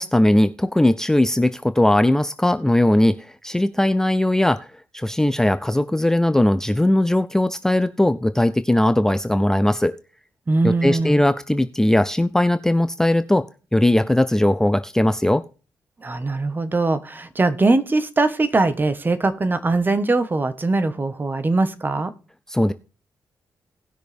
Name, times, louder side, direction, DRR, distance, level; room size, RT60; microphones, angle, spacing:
voice 1, 0.0-4.7 4.9-10.0 10.6-13.5 13.7-15.4 22.5-22.7, left 1 dB, 5° left, 12 dB, 0.5 m, -19 dB
voice 2, 10.5-11.2 16.0-22.1, right 3 dB, 30° right, 12 dB, 1.3 m, -21 dB
18.0 x 6.2 x 3.5 m, 0.34 s
cardioid pair, 90°, 7 cm